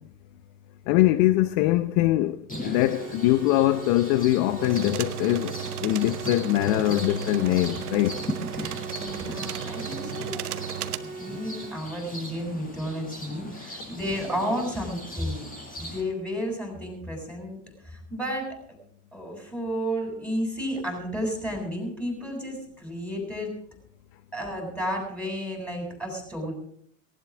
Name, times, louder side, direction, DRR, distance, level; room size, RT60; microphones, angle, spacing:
voice 1, 0.9-8.2, left 16 dB, 55° left, 0.8 m, -23 dB
sound 1, 2.5-16.0, equal, 20° left, 5.3 m, -39 dB
sound 2, 2.7-11.7, right 3 dB, 35° right, 2.8 m, -40 dB
sound 3, 4.6-11.0, right 10 dB, 75° right, 1.1 m, -35 dB
voice 2, 8.6-10.5 10.8-15.5 15.8-17.6 17.8-18.5 19.1-23.5 24.3-26.5, equal, 5° left, 7.8 m, -32 dB
18.5 x 17.0 x 3.7 m
hypercardioid pair, 80°, 45 cm